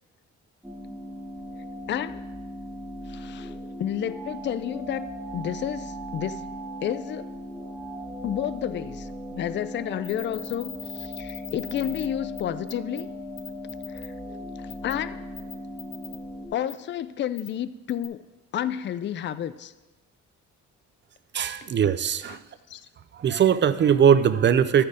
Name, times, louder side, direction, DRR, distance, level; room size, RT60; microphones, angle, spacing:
sound 1, 0.6-16.5, equal, ahead, 1.6 m, -38 dB
voice 1, 1.9-2.2 3.1-5.1 5.3-6.4 6.8-7.3 8.2-13.1 13.9-14.1 14.6-15.2 16.5-18.2 18.5-19.7 22.3-22.4 22.7-22.8, left 10 dB, 40° left, 14 dB, 0.4 m, -31 dB
sound 2, 10.0-12.1 12.4-12.5 12.7-13.0 13.4-14.1 14.7-14.9 15.4-16.2 16.7-16.8 17.4-17.5 17.9-18.1, left 7 dB, 70° left, 1.2 m, -40 dB
voice 2, 21.3-22.4 23.2-24.8, right 8 dB, 40° right, 14 dB, 0.5 m, -20 dB
12.5 x 4.4 x 4.8 m, 1.1 s
cardioid pair, 90°, 30 cm